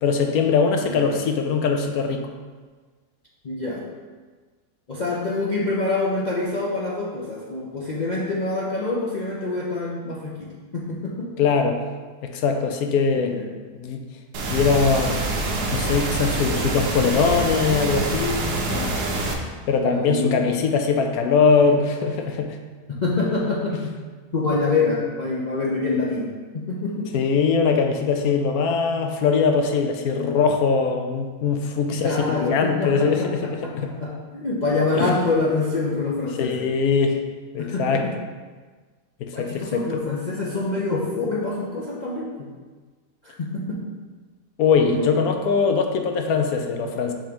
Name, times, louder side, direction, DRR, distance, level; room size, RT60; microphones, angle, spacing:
voice 1, 0.0-2.2 11.4-11.8 12.2-13.4 13.7-14.0 14.5-15.2 15.7-18.6 19.7-22.6 23.8-23.9 27.1-33.9 35.0-35.1 36.4-37.2 37.5-38.0 39.2-39.8 44.6-47.1, left 5 dB, 75° left, 5 dB, 1.0 m, -21 dB
voice 2, 0.8-1.2 3.4-3.9 4.9-11.3 13.1-13.5 18.7-19.2 19.7-20.5 22.9-23.8 24.3-27.1 31.9-36.7 37.6-38.0 39.3-42.5 43.2-43.8 44.8-45.1, left 3 dB, 55° left, -6 dB, 0.5 m, -26 dB
sound 1, 14.3-19.3, right 2 dB, 85° right, 1.3 m, -25 dB
5.1 x 3.6 x 5.1 m, 1.4 s
omnidirectional pair, 1.7 m